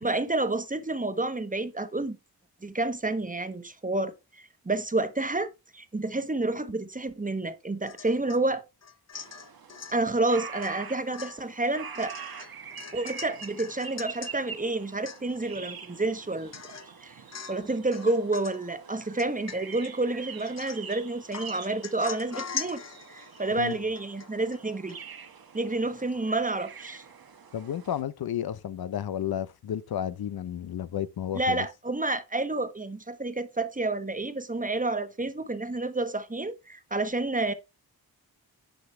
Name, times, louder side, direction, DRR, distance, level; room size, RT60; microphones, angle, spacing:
voice 1, 0.0-2.2 2.6-8.6 9.9-12.1 12.9-16.5 17.0-17.1 17.5-22.8 23.1-24.9 25.5-27.0 31.3-37.5, right 2 dB, 20° right, 1.2 m, -29 dB
Domestic sounds home sounds / Chink clink / Drip, 7.9-8.4 8.8-10.0 10.6-10.8 11.1-14.3 14.7-14.8 15.0-15.6 16.0-16.1 16.5-16.9 17.3-17.7 17.9-18.6 19.2-19.9 20.4-20.9 21.3-24.6 24.9-25.0, left 6 dB, 40° left, 0.8 m, -41 dB
sound 1, 9.1-28.0, right 6 dB, 65° right, 1.3 m, -45 dB
voice 2, 27.5-31.7, left 10 dB, 70° left, 0.6 m, -32 dB
10.0 x 5.0 x 3.2 m
cardioid pair, 60°, 39 cm